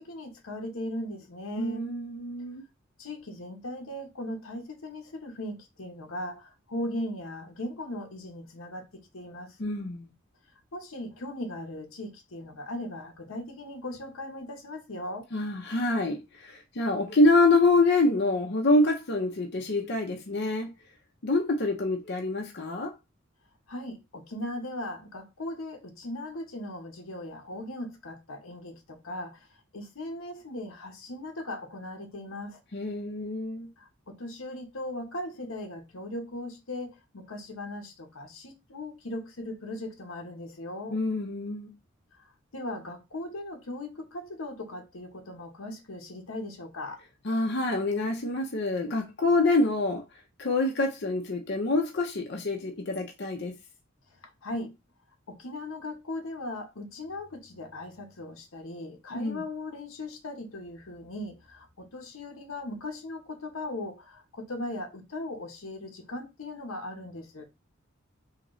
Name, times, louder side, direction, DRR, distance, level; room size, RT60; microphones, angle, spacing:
voice 1, 0.0-1.8 3.0-9.6 10.7-15.3 23.7-29.5 29.7-32.6 33.8-41.0 42.1-47.0 54.2-54.7 55.3-67.4, left 1 dB, 85° left, 0.9 m, -38 dB
voice 2, 1.6-2.6 9.6-10.1 15.3-20.7 21.2-22.9 32.7-33.7 40.9-41.7 47.2-50.0 50.4-53.5 59.1-59.4, left 2 dB, 55° left, 0.7 m, -26 dB
3.9 x 2.9 x 3.1 m
head